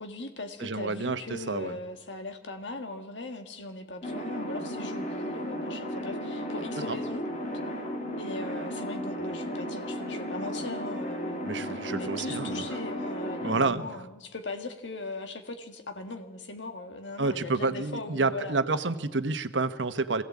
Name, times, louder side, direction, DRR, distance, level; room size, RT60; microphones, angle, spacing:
voice 1, 0.0-7.3 8.2-18.6, left 2 dB, 85° left, 6 dB, 1.7 m, -39 dB
voice 2, 0.6-1.8 6.9-7.0 11.4-12.6 13.4-13.8 17.2-20.2, right 3 dB, 85° right, 11 dB, 1.1 m, -29 dB
sound 1, 4.0-13.6, equal, 40° left, 3.1 m, -34 dB
22.5 x 16.5 x 8.5 m, 1.1 s
head